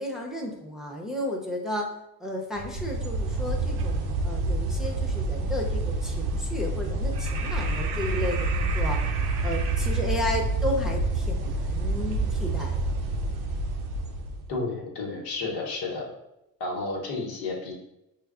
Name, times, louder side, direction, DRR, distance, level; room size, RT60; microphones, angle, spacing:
voice 1, 0.0-1.9 2.2-9.0 9.4-13.0, left 1 dB, ahead, -2 dB, 0.7 m, -33 dB
sound 1, 2.6-14.5, right 2 dB, 75° right, 0.6 m, -28 dB
voice 2, 14.5-16.1 16.6-17.7, left 3 dB, 80° left, -2 dB, 1.1 m, -31 dB
5.5 x 2.0 x 2.4 m, 0.88 s
supercardioid pair, 75°, 39 cm